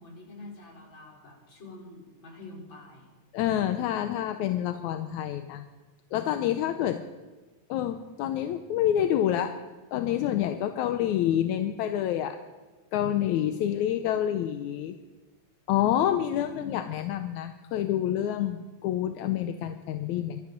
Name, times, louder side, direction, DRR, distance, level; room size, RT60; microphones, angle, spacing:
voice 1, 0.0-3.1 6.6-6.7, left 2 dB, 40° left, -2 dB, 5.1 m, -46 dB
voice 2, 3.3-5.7 6.1-7.0 7.7-9.6 9.9-12.4 12.9-15.0 15.7-20.4, left 11 dB, 80° left, 8 dB, 2.1 m, -27 dB
21.0 x 13.0 x 5.2 m, 1.3 s
omnidirectional pair, 3.3 m